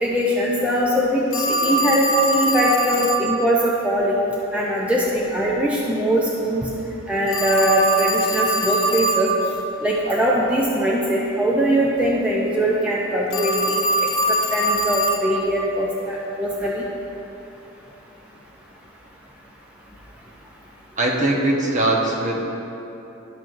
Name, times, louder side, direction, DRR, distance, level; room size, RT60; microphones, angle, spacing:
voice 1, 0.0-4.2 4.5-6.7 7.1-9.3 9.8-13.8 14.5-16.8, equal, 5° right, -5 dB, 0.5 m, -21 dB
Telephone, 1.3-3.3 7.3-9.3 13.3-15.3, right 1 dB, 65° left, 0.9 m, -22 dB
voice 2, 21.0-22.4, right 2 dB, 40° right, -1 dB, 1.0 m, -21 dB
12.0 x 6.2 x 2.6 m, 3.0 s
head